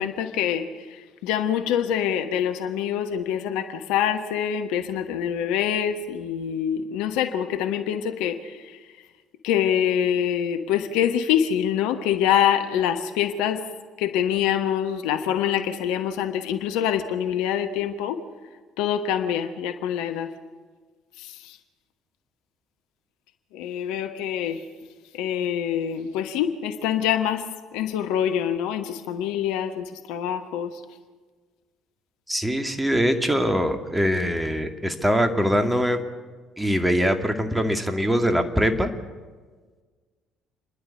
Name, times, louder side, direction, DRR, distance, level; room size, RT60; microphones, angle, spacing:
voice 1, 0.0-8.9 9.4-13.6 14.0-18.2 18.8-20.3 21.2-21.6 23.5-24.6 25.1-27.4 27.7-30.8, left 9 dB, 70° left, 8 dB, 1.2 m, -25 dB
voice 2, 32.3-36.0 36.6-38.9, equal, 10° right, 6 dB, 2.2 m, -22 dB
29.0 x 11.0 x 8.4 m, 1.4 s
figure-of-eight pair, 55°, 0 cm